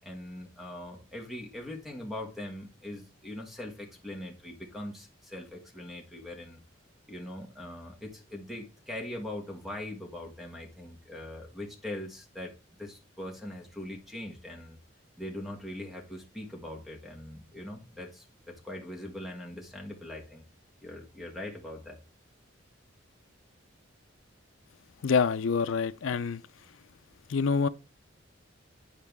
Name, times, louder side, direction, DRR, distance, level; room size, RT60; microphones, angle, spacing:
voice 1, 0.0-6.6 7.1-12.5 12.8-14.8 15.2-20.4 20.8-22.0, left 1 dB, ahead, 1.5 m, -41 dB
voice 2, 25.0-26.4 27.3-27.7, left 5 dB, 70° left, 0.5 m, -26 dB
10.0 x 4.7 x 3.5 m
head